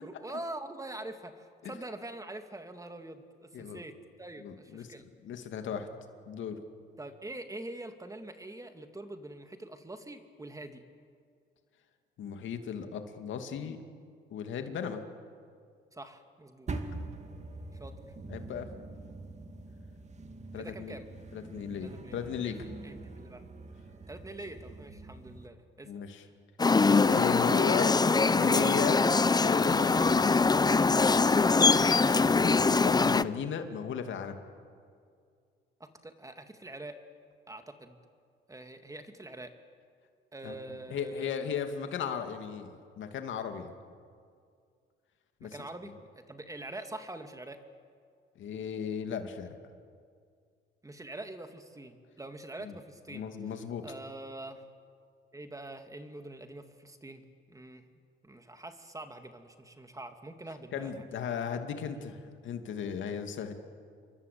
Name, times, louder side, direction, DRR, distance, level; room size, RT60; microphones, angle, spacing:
voice 1, 0.0-5.0 7.0-10.8 15.9-16.7 17.7-17.9 20.6-21.1 21.8-22.5 22.8-23.4 24.1-25.9 35.8-37.0 37.5-38.0 38.5-39.5 40.3-41.3 45.4-47.6 50.8-53.2 53.8-54.7 55.3-57.2 57.5-57.8 58.2-61.3, right 2 dB, 15° right, 7 dB, 2.5 m, -44 dB
voice 2, 4.4-5.9 6.3-6.6 12.2-13.8 14.3-15.0 18.3-18.7 20.5-21.0 21.3-22.6 25.8-26.2 27.0-29.0 29.4-30.5 31.3-34.4 40.4-40.5 40.9-43.7 45.4-45.7 48.4-49.6 52.6-52.8 53.1-53.8 60.7-63.5, left 7 dB, 75° left, 6 dB, 2.6 m, -36 dB
sound 1, 16.7-25.5, right 2 dB, 35° right, 2.4 m, -44 dB
sound 2, 26.6-33.2, left 4 dB, 20° left, 0.7 m, -23 dB
28.5 x 23.5 x 8.7 m, 2.2 s
cardioid pair, 90°, 20 cm